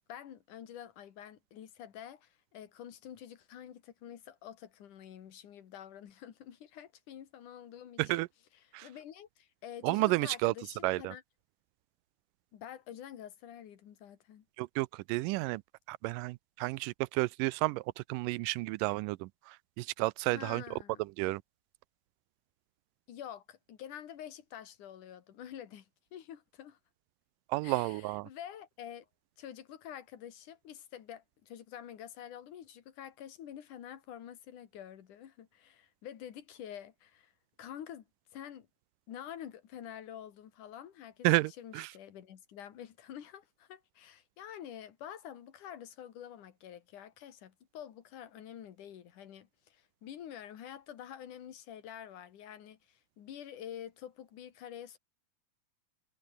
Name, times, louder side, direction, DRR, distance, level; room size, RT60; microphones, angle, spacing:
voice 1, 0.1-8.2 8.6-11.2 12.5-14.4 20.3-21.0 23.1-26.8 27.6-29.1 29.4-37.3 37.6-38.0 38.3-38.7 39.1-41.3 41.6-55.0, left 10 dB, 70° left, 3.4 m, -48 dB
voice 2, 9.8-10.5 10.8-11.1 14.6-15.6 15.9-20.6 21.2-21.4 27.5-28.3 41.2-41.9, right 21 dB, 85° right, 2.2 m, -31 dB
omnidirectional pair, 3.8 m